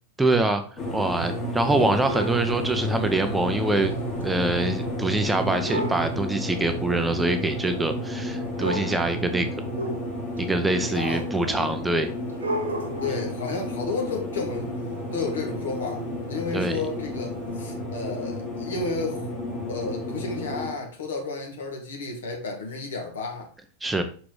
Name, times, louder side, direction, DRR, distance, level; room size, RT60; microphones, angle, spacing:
voice 1, 0.2-0.6 0.9-3.9 4.2-9.6 10.4-12.1 16.5-16.8 23.8-24.0, right 2 dB, 10° right, 0.6 m, -24 dB
sound 1, 0.8-20.7, left 1 dB, 35° left, 2.3 m, -32 dB
sound 2, 1.8-2.5 3.7-3.8 4.2-4.3 5.6-6.1 7.1-7.2 8.2-8.3 8.6-9.1 9.7-10.4 11.2-11.3 12.3-13.4 15.9-16.0 16.6-16.7 17.6-17.7, right 1 dB, 70° right, 1.2 m, -32 dB
voice 2, 10.8-11.9 13.0-14.7 15.1-19.3 19.7-23.5, left 3 dB, 65° left, 1.7 m, -32 dB
5.9 x 4.8 x 3.7 m
figure-of-eight pair, 90°, 0 cm